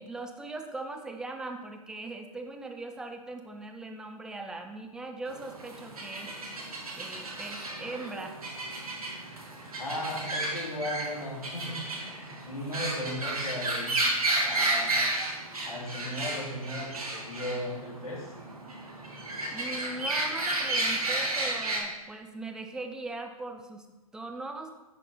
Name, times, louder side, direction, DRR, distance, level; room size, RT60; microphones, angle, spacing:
voice 1, 0.0-6.3 6.9-8.4 19.5-23.9 24.1-24.7, right 2 dB, 5° right, 4 dB, 0.5 m, -40 dB
sound 1, 5.3-21.8, right 2 dB, 70° right, 1.8 m, -32 dB
voice 2, 9.8-14.0 14.3-15.0 15.6-18.3, left 1 dB, 65° left, -4 dB, 2.6 m, -36 dB
10.5 x 4.4 x 3.9 m, 1.1 s
figure-of-eight pair, 115°, 19 cm